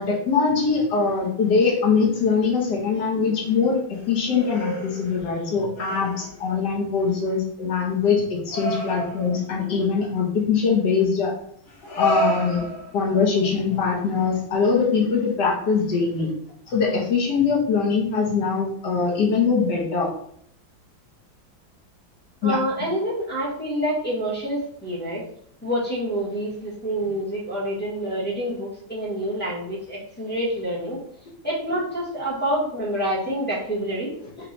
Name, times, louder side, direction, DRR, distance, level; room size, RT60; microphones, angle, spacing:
voice 1, 0.0-11.3 12.0-12.6 12.9-16.3 16.7-20.1 22.4-22.6, left 5 dB, 60° left, -2 dB, 1.5 m, -22 dB
sound 1, 2.2-2.8 3.1-5.5 5.7-6.5 6.9-7.3 8.5-9.5 10.6-10.8 11.7-13.2 14.5-14.6, right 1 dB, 80° left, 2.2 m, -31 dB
voice 2, 22.4-25.2 25.6-31.0 31.4-34.1, right 1 dB, 5° left, -7 dB, 0.9 m, -27 dB
4.6 x 2.4 x 3.9 m, 0.67 s
omnidirectional pair, 2.1 m